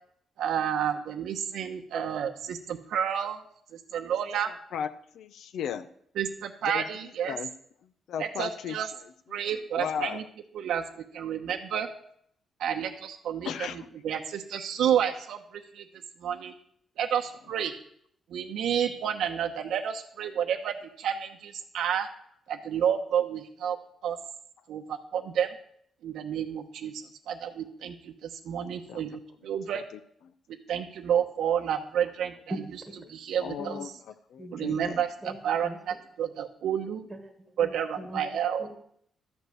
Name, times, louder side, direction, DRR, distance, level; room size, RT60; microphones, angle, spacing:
voice 1, 0.4-3.4 3.7-4.5 6.2-7.4 8.2-8.9 9.3-10.2 10.5-10.8 11.1-11.9 12.6-13.7 14.0-15.8 16.2-16.5 17.0-17.7 18.3-22.1 22.5-23.8 24.0-24.2 24.7-25.5 26.0-29.8 30.7-32.3 33.1-33.8 34.5-35.1 35.4-35.7 36.2-37.1 37.6-38.6, right 9 dB, 85° right, 3 dB, 0.9 m, -30 dB
voice 2, 4.5-4.9 5.1-5.9 6.6-6.8 7.2-7.5 8.1-8.8 9.0-10.3 13.4-13.9 28.9-29.1 29.7-30.0 33.4-35.0, left 8 dB, 75° left, 13 dB, 0.7 m, -36 dB
voice 3, 32.5-32.9 33.6-33.9 34.4-34.8 35.2-35.4 35.6-36.0 37.1-38.8, right 1 dB, 10° right, 5 dB, 1.4 m, -41 dB
12.5 x 5.4 x 7.7 m, 0.66 s
cardioid pair, 160°, 0 cm